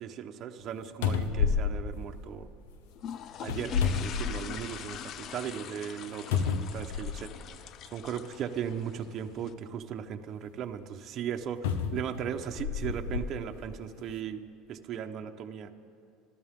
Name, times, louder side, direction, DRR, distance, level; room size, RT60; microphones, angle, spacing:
voice 1, 0.0-2.5 3.4-7.3 7.8-14.4 14.7-15.7, right 8 dB, 50° right, 4 dB, 1.1 m, -37 dB
sound 1, 0.6-0.7 1.0-2.7 3.4-4.8 5.3-5.4 6.3-7.4 8.4-8.5 11.6-13.3 14.0-14.1, left 6 dB, 80° left, 0.9 m, -30 dB
sound 2, 3.0-9.5, left 8 dB, 50° left, 0.6 m, -43 dB
29.5 x 13.0 x 3.8 m, 2.3 s
supercardioid pair, 90°, 0 cm